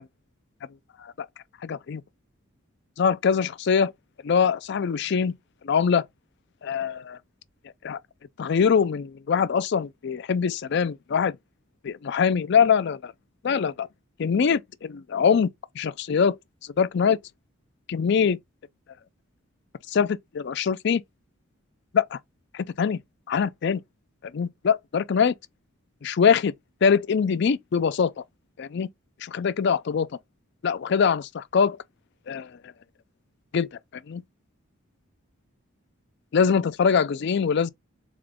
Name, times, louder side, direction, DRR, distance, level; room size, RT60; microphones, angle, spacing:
voice 1, 1.6-2.0 3.0-3.9 4.2-5.3 5.6-6.1 6.6-7.2 7.8-8.0 8.4-11.3 11.8-13.1 13.4-13.9 14.2-15.5 15.8-16.4 16.8-17.2 17.9-18.4 19.9-21.0 21.9-22.2 22.5-23.0 23.3-23.8 24.3-25.3 26.0-26.5 26.8-28.1 28.6-28.9 29.2-30.1 30.6-31.8 32.3-32.5 33.5-33.7 34.1-34.2 36.3-37.7, left 6 dB, 55° left, 0.4 m, -23 dB
3.7 x 3.7 x 3.4 m
head